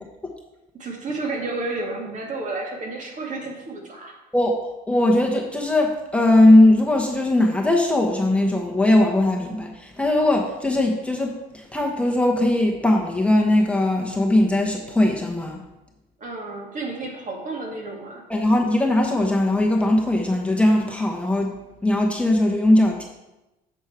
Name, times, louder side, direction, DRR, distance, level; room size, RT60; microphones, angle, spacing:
voice 1, 0.7-4.1 16.2-18.2, right 2 dB, 45° right, 0 dB, 2.0 m, -31 dB
voice 2, 4.9-15.6 18.3-21.6 21.8-23.0, left 1 dB, 5° left, 0 dB, 0.9 m, -19 dB
7.2 x 6.3 x 4.5 m, 0.99 s
cardioid pair, 110°, 17 cm